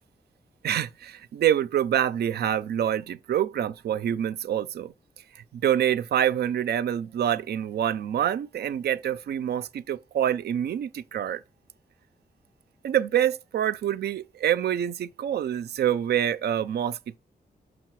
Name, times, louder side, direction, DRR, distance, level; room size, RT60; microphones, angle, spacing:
voice 1, 0.6-4.9 5.5-11.4 12.8-17.2, right 10 dB, 90° right, 0.5 m, -26 dB
6.2 x 4.9 x 4.6 m
wide cardioid pair, 115°, 16 cm